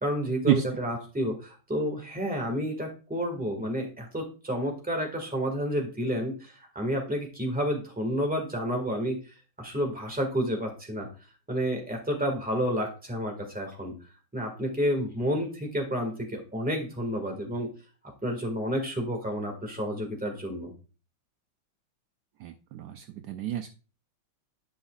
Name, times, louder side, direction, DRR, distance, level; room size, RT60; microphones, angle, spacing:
voice 1, 0.0-9.2 9.6-11.1 11.5-13.9 14.3-17.7 18.2-20.7, equal, 5° right, 2 dB, 1.4 m, -30 dB
voice 2, 22.4-23.7, right 13 dB, 85° right, 7 dB, 0.9 m, -28 dB
10.5 x 5.6 x 2.3 m, 0.34 s
omnidirectional pair, 2.3 m